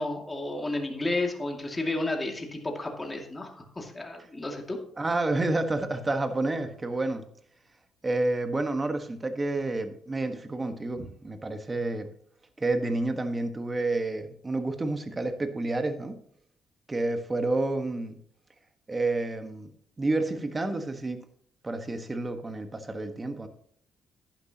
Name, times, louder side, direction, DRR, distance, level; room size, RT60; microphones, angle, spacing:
voice 1, 0.0-4.8, left 2 dB, 20° left, 2 dB, 2.4 m, -32 dB
voice 2, 5.0-7.2 8.0-12.1 12.6-16.2 16.9-18.2 18.9-19.7 20.0-21.2 21.6-23.5, right 2 dB, 25° right, 7 dB, 1.4 m, -29 dB
11.0 x 10.5 x 2.9 m, 0.64 s
cardioid pair, 90°, 0 cm